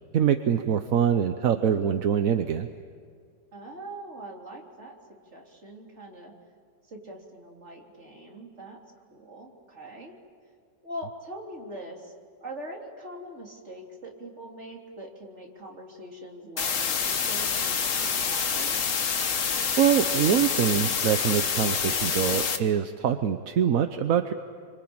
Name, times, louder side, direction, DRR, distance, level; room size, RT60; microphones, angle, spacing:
voice 1, 0.1-2.7 19.8-24.3, right 8 dB, 55° right, 8 dB, 1.2 m, -24 dB
voice 2, 3.5-6.3 6.9-8.8 9.1-10.1 10.8-12.1 12.4-18.8, right 1 dB, 40° right, -1 dB, 3.8 m, -42 dB
sound 1, 16.6-22.6, left 6 dB, 50° left, 1.5 m, -27 dB
27.0 x 25.0 x 8.8 m, 2.1 s
omnidirectional pair, 1.9 m